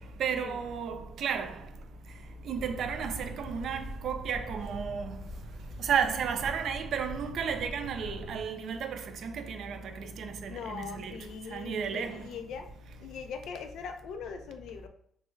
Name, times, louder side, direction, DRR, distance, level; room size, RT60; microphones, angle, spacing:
voice 1, 0.2-1.6 2.5-5.1 5.8-11.2 11.5-12.2, right 7 dB, 70° right, 0.4 m, -33 dB
sound 1, 2.5-8.4, left 1 dB, 50° left, 0.8 m, -42 dB
voice 2, 10.5-12.7 13.0-14.9, left 6 dB, 80° left, 0.4 m, -41 dB
3.3 x 2.2 x 3.1 m
cardioid pair, 90°, 0 cm